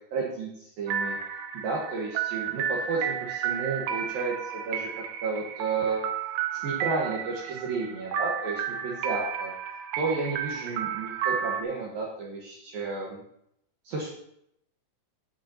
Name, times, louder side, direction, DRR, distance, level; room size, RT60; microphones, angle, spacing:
voice 1, 0.1-1.2 1.5-4.9 5.2-6.0 6.5-9.5 10.0-13.2 13.8-14.1, right 4 dB, 65° right, -2 dB, 2.8 m, -32 dB
sound 1, 0.9-11.6, right 8 dB, 90° right, 3.4 m, -32 dB
16.5 x 8.2 x 2.9 m, 0.75 s
omnidirectional pair, 5.1 m